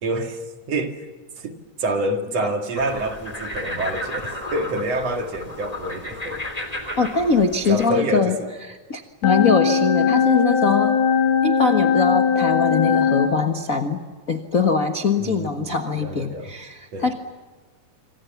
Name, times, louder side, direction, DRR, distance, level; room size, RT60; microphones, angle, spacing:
voice 1, 0.0-0.4 0.7-1.0 1.4-6.4 7.7-8.5 15.2-16.5 16.9-17.1, right 2 dB, 55° right, 5 dB, 3.1 m, -27 dB
sound 1, 2.7-7.9, left 1 dB, 10° left, 3.1 m, -33 dB
voice 2, 7.0-8.4 8.7-11.0 11.4-14.0 14.3-17.1, left 4 dB, 45° left, 6 dB, 1.1 m, -22 dB
sound 2, 9.2-13.3, left 7 dB, 80° left, 3.6 m, -19 dB
27.0 x 26.0 x 7.2 m, 1.4 s
omnidirectional pair, 3.7 m